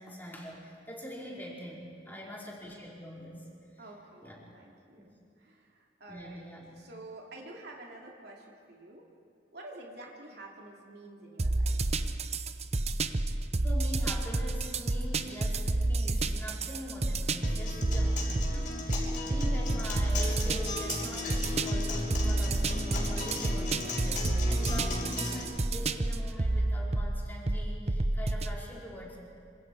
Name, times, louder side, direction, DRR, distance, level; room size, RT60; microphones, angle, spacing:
voice 1, 0.0-3.5 3.7-3.8 4.2-4.4 5.0-5.1 6.1-6.7 12.7-12.9 13.2-18.2 18.5-18.8 19.2-29.2, equal, 10° left, -5 dB, 4.9 m, -44 dB
voice 2, 3.8-6.4 6.8-9.1 9.5-11.8 17.8-18.2, right 2 dB, 60° right, -1 dB, 2.8 m, -49 dB
sound 1, 11.4-28.5, right 2 dB, 35° right, 0.8 m, -30 dB
Acoustic guitar, 17.4-25.4, left 2 dB, 45° left, 5.3 m, -36 dB
26.5 x 26.0 x 4.9 m, 2.4 s
head